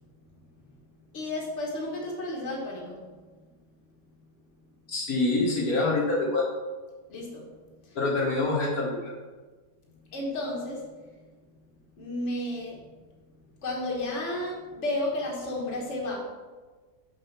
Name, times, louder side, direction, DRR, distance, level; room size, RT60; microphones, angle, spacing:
voice 1, 1.1-3.1 7.1-7.5 10.1-10.9 12.0-12.8 13.6-16.2, left 1 dB, 50° left, -1 dB, 1.7 m, -32 dB
voice 2, 4.9-6.5 8.0-9.1, left 2 dB, 65° left, -3 dB, 1.8 m, -26 dB
6.7 x 4.9 x 5.8 m, 1.3 s
omnidirectional pair, 1.7 m